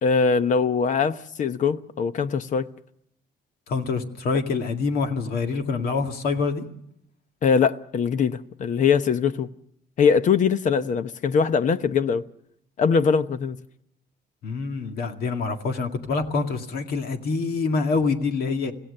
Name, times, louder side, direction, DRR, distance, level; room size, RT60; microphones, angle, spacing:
voice 1, 0.0-2.7 7.4-9.5 10.0-12.3 12.8-13.6, left 6 dB, 50° left, 0.8 m, -22 dB
voice 2, 3.7-6.6 14.4-18.7, left 4 dB, 65° left, 2.1 m, -26 dB
26.0 x 16.5 x 6.6 m
cardioid pair, 110°, 17 cm